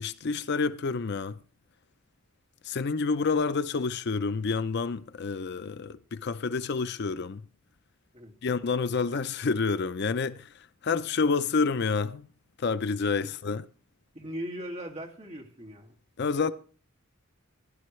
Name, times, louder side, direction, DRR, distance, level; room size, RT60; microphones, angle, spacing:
voice 1, 0.0-1.4 2.6-7.5 8.4-12.3 12.6-13.6 16.2-16.5, left 4 dB, 55° left, 0.5 m, -28 dB
voice 2, 14.1-16.0, equal, 30° right, 2.3 m, -39 dB
16.5 x 11.5 x 3.2 m
head